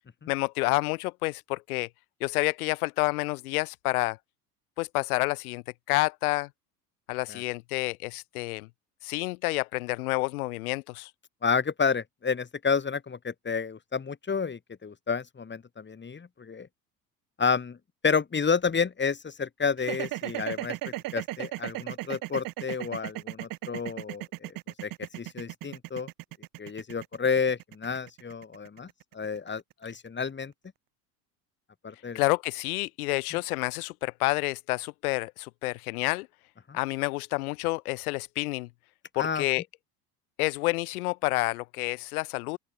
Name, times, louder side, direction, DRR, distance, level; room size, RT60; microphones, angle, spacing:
voice 1, 0.3-1.9 2.2-4.2 4.8-6.5 7.1-8.7 9.0-11.1 32.1-36.3 36.7-38.7 39.1-39.6 40.4-42.6, left 22 dB, 60° left, 1.8 m, -29 dB
voice 2, 11.4-16.7 17.4-17.8 18.0-24.5 24.8-24.9 25.2-26.1 26.6-28.9 29.1-30.5 31.8-32.2 36.7-36.8 39.2-39.4, left 5 dB, 20° left, 4.9 m, -30 dB
sound 1, 19.8-30.0, right 17 dB, 45° right, 1.6 m, -36 dB
open air
figure-of-eight pair, 70°, 48 cm